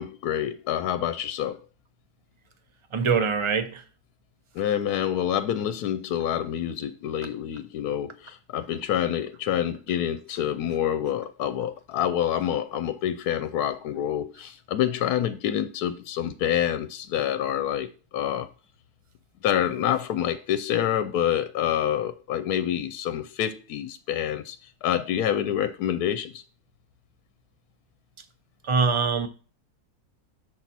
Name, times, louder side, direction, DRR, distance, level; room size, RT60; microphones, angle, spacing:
voice 1, 0.0-1.6 4.5-18.5 19.4-26.4, left 10 dB, 80° left, 1.1 m, -27 dB
voice 2, 2.9-3.8 28.6-29.3, right 5 dB, 35° right, 0.5 m, -23 dB
7.3 x 4.0 x 5.9 m
omnidirectional pair, 1.7 m